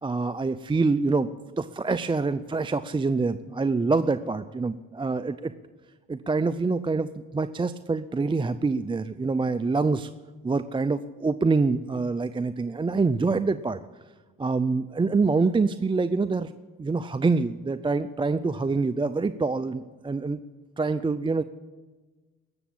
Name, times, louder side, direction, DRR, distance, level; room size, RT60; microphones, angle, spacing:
voice 1, 0.0-1.3 1.6-5.5 6.1-10.1 10.4-13.8 14.4-16.5 16.8-20.4 20.8-21.4, right 4 dB, 15° right, 12 dB, 0.5 m, -25 dB
19.0 x 7.1 x 8.7 m, 1.3 s
cardioid pair, 90°, 30 cm